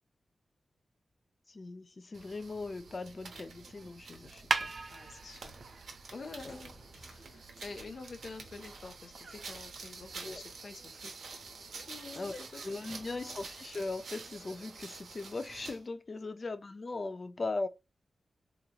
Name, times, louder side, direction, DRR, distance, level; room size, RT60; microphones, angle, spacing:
voice 1, 1.5-4.7 6.5-6.6 10.2-10.4 12.1-17.7, left 3 dB, 35° left, 0.3 m, -39 dB
sound 1, 2.1-15.9, right 4 dB, 85° right, 0.9 m, -49 dB
sound 2, 4.3-10.4, right 4 dB, 50° right, 0.5 m, -41 dB
voice 2, 4.9-5.5 6.1-11.1 11.9-12.6 12.9-13.4, left 3 dB, 55° left, 0.8 m, -48 dB
Walk footsteps, 6.1-14.9, equal, 10° left, 1.2 m, -62 dB
3.8 x 2.9 x 2.2 m
wide cardioid pair, 145°, 0 cm